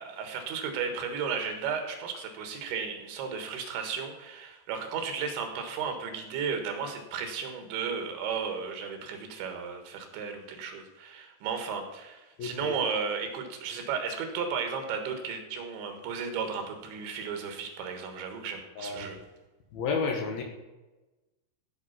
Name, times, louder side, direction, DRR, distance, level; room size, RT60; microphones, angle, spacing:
voice 1, 0.0-19.2, right 6 dB, 75° right, 5 dB, 3.8 m, -34 dB
voice 2, 12.4-12.8 18.8-19.2 19.7-20.4, left 5 dB, 65° left, 2 dB, 2.8 m, -31 dB
14.0 x 5.9 x 5.8 m, 1.1 s
omnidirectional pair, 5.4 m